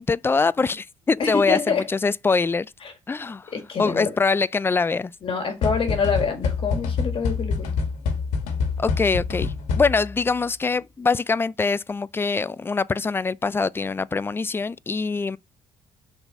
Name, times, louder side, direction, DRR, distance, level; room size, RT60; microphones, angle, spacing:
voice 1, 0.0-2.7 3.1-3.5 3.8-5.1 8.8-15.4, left 4 dB, 20° left, 0.4 m, -23 dB
voice 2, 1.2-1.9 2.8-2.9 3.5-4.1 5.2-7.7, left 5 dB, 50° left, 1.9 m, -26 dB
sound 1, 5.6-10.2, left 5 dB, 90° left, 1.4 m, -26 dB
5.4 x 4.1 x 6.0 m
supercardioid pair, 75°, 12 cm